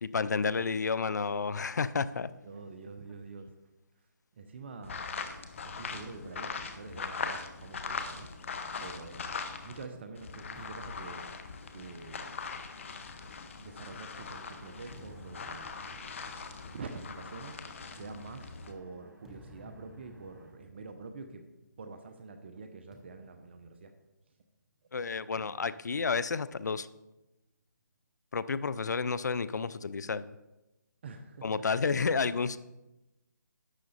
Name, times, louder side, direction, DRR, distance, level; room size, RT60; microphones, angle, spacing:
voice 1, 0.0-2.3 24.9-26.9 28.3-30.3 31.4-32.6, left 5 dB, 60° left, 16 dB, 0.5 m, -31 dB
voice 2, 2.4-3.5 4.3-5.1 5.6-8.3 8.8-11.3 11.7-12.4 13.6-15.8 16.1-17.5 17.9-21.4 21.8-23.9 31.0-31.6 32.2-32.6, right 4 dB, 35° right, 6 dB, 0.8 m, -46 dB
sound 1, 4.8-9.9 10.1-18.7, left 5 dB, 40° left, 0.9 m, -41 dB
sound 2, 10.5-14.1 14.7-22.1 22.3-22.6 22.9-24.5 25.4-27.1, equal, 5° right, 0.4 m, -59 dB
sound 3, 14.2-20.5, right 1 dB, 80° right, 3.6 m, -59 dB
11.5 x 7.6 x 4.1 m, 1.0 s
figure-of-eight pair, 160°, 10 cm